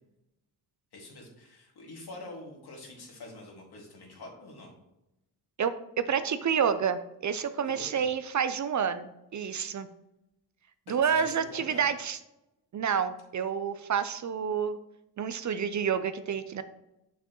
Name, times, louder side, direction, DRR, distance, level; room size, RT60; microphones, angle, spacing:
voice 1, 0.9-4.7 7.6-8.1 9.5-9.8 10.9-11.8, left 2 dB, 70° left, -1 dB, 2.1 m, -46 dB
voice 2, 5.6-9.9 10.9-12.2 12.7-14.8 15.2-16.6, right 7 dB, 45° right, 12 dB, 0.5 m, -29 dB
6.8 x 6.2 x 3.0 m, 0.90 s
cardioid pair, 105°, 40 cm